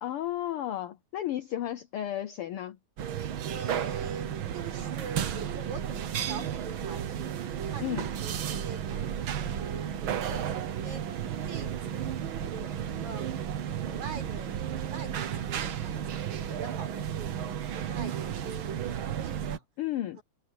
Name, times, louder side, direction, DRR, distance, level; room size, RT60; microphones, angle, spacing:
voice 1, 0.0-2.8 7.8-8.1 19.8-20.2, left 12 dB, 75° left, 1.3 m, -33 dB
sound 1, 3.0-19.6, right 9 dB, 55° right, 1.6 m, -33 dB
voice 2, 3.5-11.0 11.4-13.3 13.8-19.7 20.2-20.3, right 5 dB, 80° right, 7.2 m, -45 dB
omnidirectional pair, 3.4 m